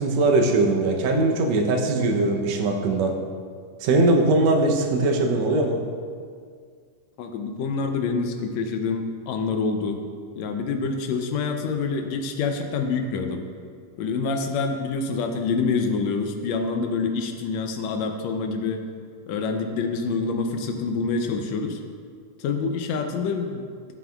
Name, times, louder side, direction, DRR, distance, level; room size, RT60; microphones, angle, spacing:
voice 1, 0.0-3.2 3.8-5.8, right 2 dB, 75° right, 2 dB, 1.7 m, -21 dB
voice 2, 7.2-10.0 10.4-13.4 14.0-18.8 19.3-21.8 22.4-23.7, left 4 dB, 80° left, 5 dB, 1.6 m, -26 dB
13.0 x 7.2 x 2.3 m, 2.1 s
omnidirectional pair, 3.7 m